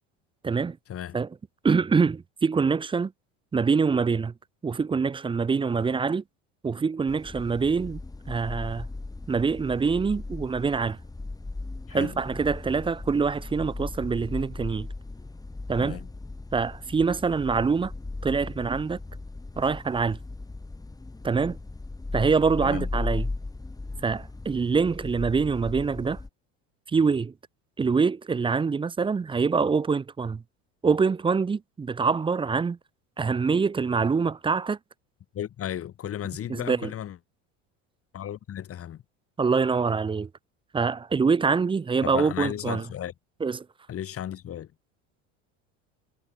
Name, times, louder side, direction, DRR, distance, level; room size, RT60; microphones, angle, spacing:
voice 1, 0.4-0.8 1.1-1.3 1.6-3.1 3.5-4.3 4.6-6.2 6.6-8.0 8.3-8.9 9.3-11.0 11.9-14.9 15.7-16.0 16.5-17.9 18.2-19.0 19.6-20.2 21.2-21.6 22.1-23.3 24.0-26.2 26.9-27.3 27.8-30.4 30.8-32.8 33.2-34.8 36.5-36.9 39.4-40.3 40.7-42.8 43.4-43.7, right 5 dB, 15° right, 0.6 m, -25 dB
sound 1, 7.1-26.3, left 2 dB, 10° left, 2.1 m, -37 dB
voice 2, 11.9-12.2 15.8-16.1 22.6-22.9 35.3-37.2 38.1-39.0 42.0-43.1 43.9-44.7, left 10 dB, 40° left, 2.3 m, -34 dB
supercardioid pair, 100°, 35 cm